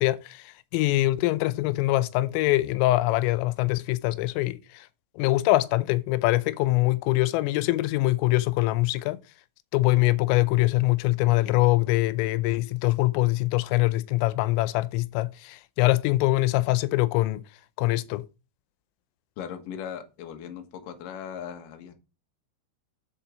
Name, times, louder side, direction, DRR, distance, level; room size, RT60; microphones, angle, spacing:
voice 1, 0.0-4.9 5.2-9.2 9.7-17.4 17.8-18.2, left 18 dB, 90° left, 3.3 m, -23 dB
voice 2, 19.4-21.9, left 8 dB, 65° left, 2.2 m, -38 dB
7.7 x 7.3 x 5.1 m
omnidirectional pair, 5.8 m